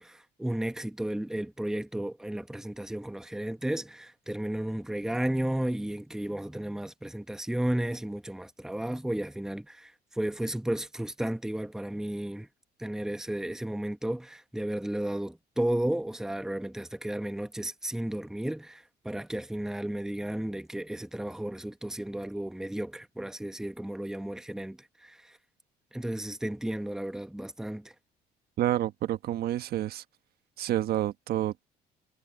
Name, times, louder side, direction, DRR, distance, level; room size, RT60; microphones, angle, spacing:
voice 1, 0.0-12.5 12.8-25.4 25.9-27.9, right 1 dB, 5° right, 1.2 m, -33 dB
voice 2, 28.6-30.0 30.6-31.6, right 13 dB, 65° right, 1.3 m, -29 dB
cardioid pair, 110°, 17 cm